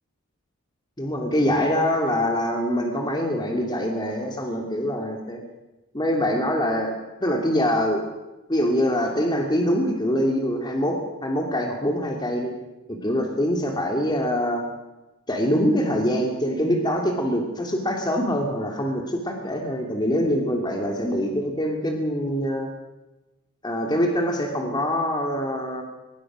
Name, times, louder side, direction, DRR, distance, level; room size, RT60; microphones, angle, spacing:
voice 1, 1.0-5.4 5.9-6.9 7.2-8.0 8.5-12.5 13.0-14.6 15.3-22.7 23.6-25.8, equal, 20° left, 1 dB, 2.7 m, -24 dB
25.0 x 20.0 x 6.3 m, 1.1 s
head